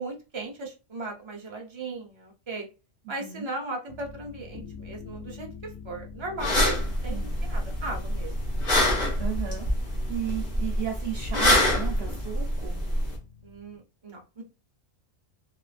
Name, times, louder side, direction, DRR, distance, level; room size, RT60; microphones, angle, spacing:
voice 1, 0.0-2.7 3.1-8.5 13.4-14.4, right 2 dB, 30° right, 1 dB, 0.6 m, -37 dB
voice 2, 3.0-3.5 7.1-7.3 9.2-9.7 10.1-12.8, right 10 dB, 65° right, 1 dB, 0.8 m, -34 dB
sound 1, 3.9-13.8, left 6 dB, 80° left, 0.9 m, -46 dB
sound 2, 6.4-13.2, left 1 dB, 50° left, 1.1 m, -26 dB
2.8 x 2.3 x 2.4 m, 0.30 s
omnidirectional pair, 1.2 m